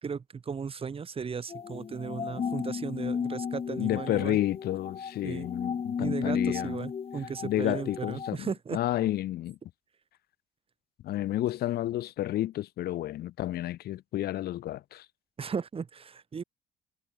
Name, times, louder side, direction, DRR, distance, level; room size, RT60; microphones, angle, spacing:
voice 1, 0.0-4.4 5.2-5.5 6.0-8.8 15.4-16.4, right 6 dB, 35° right, 5.6 m, -36 dB
sound 1, 1.5-8.3, left 6 dB, 35° left, 1.9 m, -34 dB
voice 2, 3.8-6.8 7.4-9.6 11.0-15.1, left 14 dB, 70° left, 2.3 m, -31 dB
cardioid pair, 110°, 17 cm